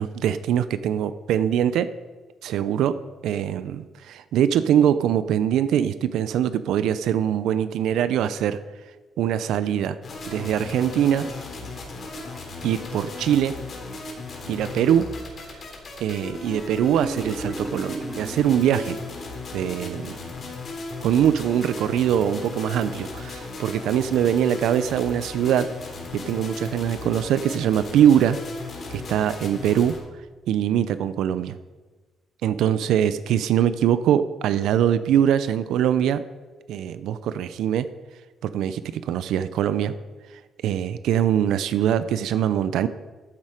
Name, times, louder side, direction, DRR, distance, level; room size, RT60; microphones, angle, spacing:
voice 1, 0.0-1.9 2.4-2.9 3.2-8.6 9.2-10.0 10.3-11.3 12.6-13.5 14.5-15.1 16.0-19.0 19.5-20.2 21.0-25.7 26.1-28.4 28.9-29.9 30.5-31.6 32.4-36.2 36.7-37.9 38.4-39.9 40.6-42.9, right 10 dB, 85° right, 13 dB, 0.5 m, -22 dB
sound 1, 10.0-30.0, left 3 dB, 50° left, 3.5 m, -36 dB
Marimba xylophone, 16.6-19.4, right 2 dB, 25° right, 0.7 m, -35 dB
13.5 x 7.5 x 5.0 m, 1.3 s
cardioid pair, 90°, 0 cm